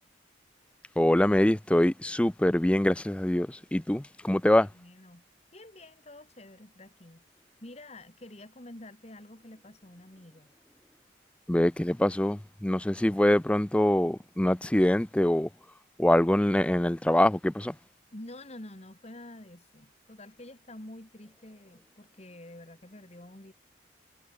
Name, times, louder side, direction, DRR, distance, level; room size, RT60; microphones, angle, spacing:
voice 1, 1.0-4.7 11.5-15.5 16.0-17.7, left 1 dB, 5° left, 0.3 m, -24 dB
voice 2, 4.6-5.2 5.5-7.2 7.6-10.5 18.1-23.5, left 1 dB, 35° left, 2.0 m, -48 dB
head